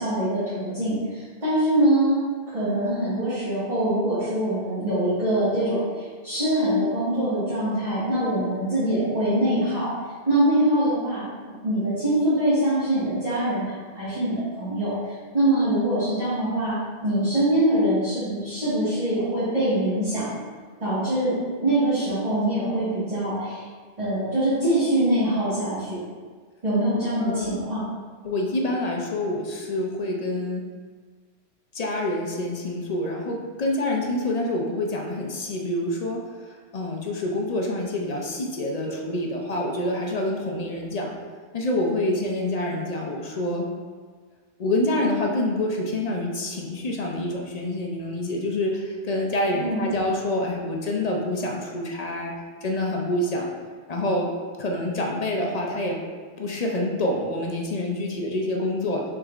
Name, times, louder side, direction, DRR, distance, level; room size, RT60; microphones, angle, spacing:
voice 1, 0.0-2.2 2.5-9.9 10.3-11.3 11.6-14.9 15.3-20.3 20.8-21.4 21.6-23.6 24.0-26.0 26.6-27.9 49.6-49.8, right 1 dB, 35° right, -14 dB, 1.7 m, -23 dB
voice 2, 27.2-27.6 28.2-30.7 31.7-41.1 41.5-43.7 44.6-52.3 52.6-53.5 53.9-54.3 54.6-56.0 56.4-59.0, left 1 dB, 50° left, 0 dB, 0.5 m, -27 dB
6.0 x 3.6 x 2.4 m, 1.5 s
omnidirectional pair, 1.2 m